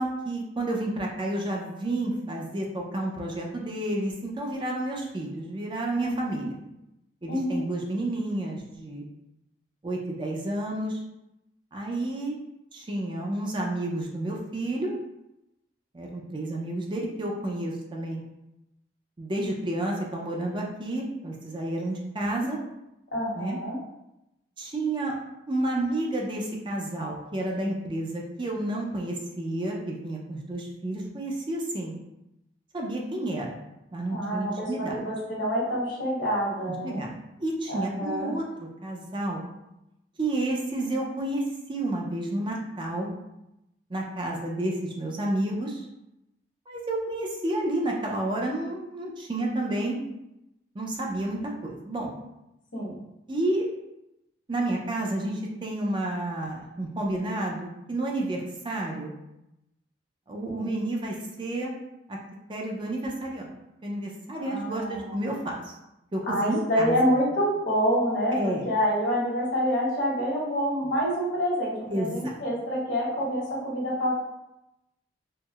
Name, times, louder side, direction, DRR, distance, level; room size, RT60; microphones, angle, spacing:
voice 1, 0.0-6.6 7.2-9.0 9.8-11.0 11.7-12.4 12.7-14.9 15.9-18.2 19.2-22.6 23.3-23.6 24.6-25.1 25.5-32.0 32.7-33.6 33.9-34.9 36.7-37.1 37.4-39.5 40.2-41.4 41.7-43.1 43.9-45.9 46.7-50.0 50.7-52.1 53.3-53.7 54.5-59.2 60.3-61.7 62.1-62.2 62.5-63.5 63.8-65.8 66.1-67.0 68.3-68.6 71.9-72.4, right 1 dB, 25° right, -1 dB, 0.4 m, -30 dB
voice 2, 6.0-6.5 7.3-7.6 22.2-22.5 23.1-23.8 34.1-37.0 37.7-38.3 52.7-53.0 60.4-60.7 64.4-65.2 66.3-74.1, equal, 75° left, -5 dB, 1.2 m, -27 dB
4.5 x 2.0 x 2.3 m, 0.89 s
head